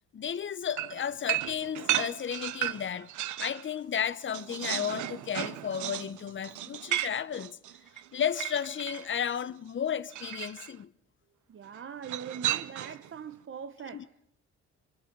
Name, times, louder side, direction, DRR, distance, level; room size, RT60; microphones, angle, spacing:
voice 1, 0.1-3.1 3.4-7.6 8.1-10.9 13.9-14.0, left 8 dB, 40° left, 0.8 m, -33 dB
sound 1, 0.8-3.7 4.0-9.1 10.1-10.7 12.0-13.1, right 13 dB, 75° right, 0.9 m, -34 dB
voice 2, 11.5-14.3, right 7 dB, 45° right, 0.9 m, -42 dB
24.5 x 22.5 x 5.4 m
cardioid pair, 90°, 30 cm